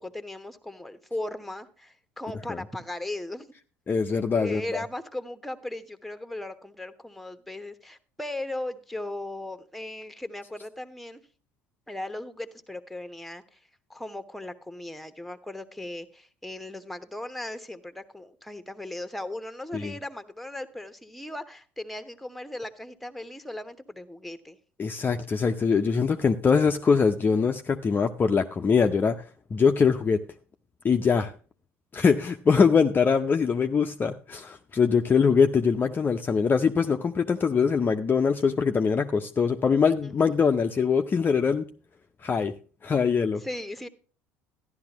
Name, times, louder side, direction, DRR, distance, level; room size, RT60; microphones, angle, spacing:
voice 1, 0.0-3.5 4.1-11.2 11.9-13.6 13.9-24.6 40.0-40.1 43.4-43.9, left 1 dB, ahead, 1.1 m, -37 dB
voice 2, 3.9-4.8 19.7-19.9 24.8-29.3 29.5-30.2 30.8-31.3 31.9-41.6 42.2-42.5 42.8-43.4, left 5 dB, 25° left, 0.6 m, -23 dB
13.0 x 11.0 x 3.0 m
hypercardioid pair, 65°, 8 cm